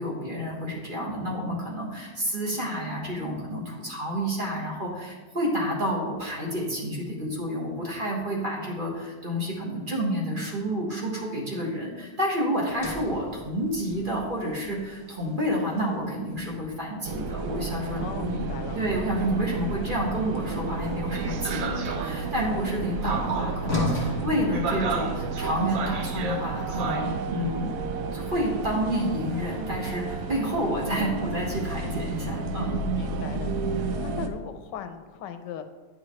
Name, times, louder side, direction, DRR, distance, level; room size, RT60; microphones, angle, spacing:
voice 1, 0.0-18.5 18.7-27.7 28.1-32.8, equal, 30° right, -3 dB, 1.4 m, -29 dB
Sliding door, 12.7-16.9 20.4-25.4, equal, 25° left, 1.6 m, -37 dB
sound 1, 17.0-34.3, right 4 dB, 65° right, 0.9 m, -31 dB
voice 2, 18.0-18.8 32.9-33.7 34.0-35.6, left 8 dB, 80° left, 8 dB, 1.2 m, -38 dB
Bass guitar, 21.5-27.7, equal, 50° left, 0.7 m, -45 dB
9.4 x 6.2 x 3.1 m, 1.2 s
omnidirectional pair, 1.9 m